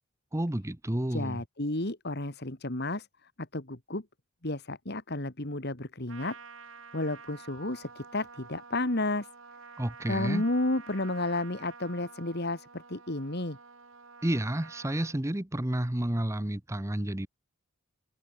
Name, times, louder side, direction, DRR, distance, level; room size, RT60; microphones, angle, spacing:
voice 1, 0.3-1.4 9.8-10.4 14.2-17.3, right 1 dB, 15° right, 0.8 m, -30 dB
voice 2, 1.1-3.1 3.5-4.0 4.4-6.4 6.9-9.3 10.1-13.6, left 2 dB, 50° left, 2.6 m, -32 dB
Trumpet, 6.1-15.2, right 5 dB, 70° right, 4.0 m, -50 dB
open air
head